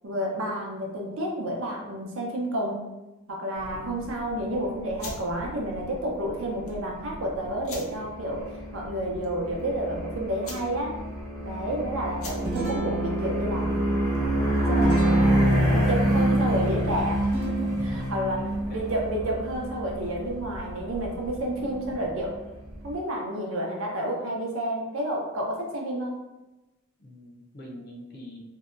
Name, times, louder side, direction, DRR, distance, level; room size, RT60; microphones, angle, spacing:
voice 1, 0.0-2.8 3.3-8.4 8.7-10.9 11.4-14.3 14.6-15.4 15.7-18.4 18.7-22.3 22.8-26.2, right 1 dB, 65° right, -1 dB, 0.6 m, -30 dB
sound 1, 3.6-22.9, equal, 5° right, 0.6 m, -28 dB
sound 2, 4.9-14.4, left 2 dB, 90° left, 0.6 m, -46 dB
Guitar, 12.0-21.8, right 5 dB, 85° right, 1.0 m, -36 dB
voice 2, 18.4-18.8 27.0-28.4, left 1 dB, 45° left, -2 dB, 0.5 m, -45 dB
2.7 x 2.1 x 2.4 m, 1.0 s
head